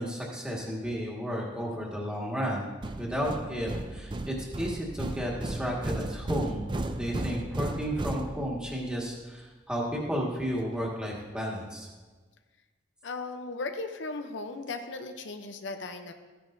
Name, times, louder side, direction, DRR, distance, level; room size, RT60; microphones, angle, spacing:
voice 1, 0.0-2.7 3.0-6.7 7.0-11.9, equal, 5° right, -4 dB, 1.7 m, -33 dB
sound 1, 2.8-8.8, right 2 dB, 25° right, 0.4 m, -35 dB
voice 2, 13.0-16.1, left 3 dB, 75° left, 6 dB, 0.7 m, -37 dB
14.5 x 10.0 x 2.7 m, 1.3 s
head